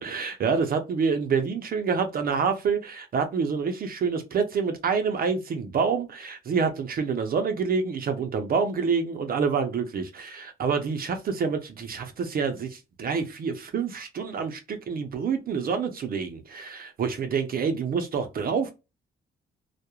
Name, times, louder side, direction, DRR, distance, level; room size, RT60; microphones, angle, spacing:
voice 1, 0.0-18.7, right 5 dB, 50° right, 0.5 m, -27 dB
2.3 x 2.0 x 2.9 m
cardioid pair, 90°, 20 cm